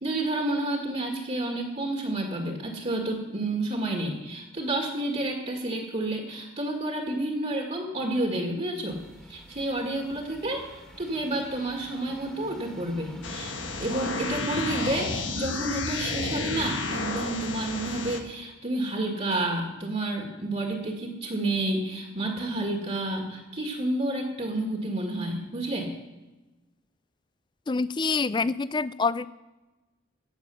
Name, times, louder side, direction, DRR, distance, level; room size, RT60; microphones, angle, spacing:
voice 1, 0.0-9.0 9.3-25.9, right 1 dB, 40° right, 0 dB, 1.8 m, -30 dB
sound 1, 8.9-18.1, equal, 5° left, 1.7 m, -46 dB
sound 2, 13.2-18.2, left 3 dB, 80° left, 1.4 m, -32 dB
voice 2, 27.7-29.3, left 4 dB, 25° left, 17 dB, 0.4 m, -26 dB
16.5 x 6.9 x 6.9 m, 1.1 s
head